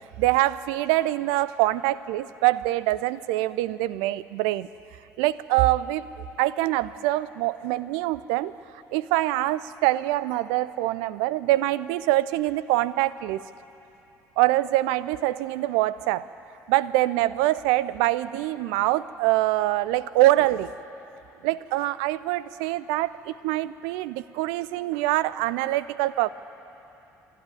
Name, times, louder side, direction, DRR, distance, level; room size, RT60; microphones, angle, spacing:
voice 1, 0.2-4.7 5.2-13.4 14.4-16.3 16.7-20.7 21.4-26.3, right 16 dB, 65° right, 17 dB, 0.5 m, -24 dB
27.0 x 12.0 x 9.3 m, 2.8 s
figure-of-eight pair, 50°, 9 cm